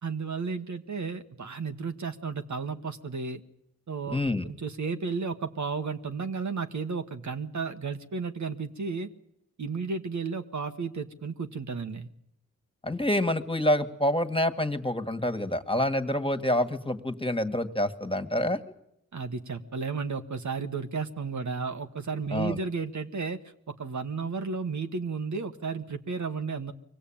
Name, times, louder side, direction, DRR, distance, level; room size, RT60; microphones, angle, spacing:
voice 1, 0.0-3.4 3.9-9.1 9.6-12.1 19.1-23.4 23.7-26.7, right 4 dB, 65° right, 7 dB, 1.5 m, -33 dB
voice 2, 4.1-4.5 12.8-18.6 22.3-22.6, left 1 dB, 15° left, 8 dB, 2.0 m, -27 dB
23.0 x 17.0 x 8.9 m, 0.79 s
cardioid pair, 40°, 32 cm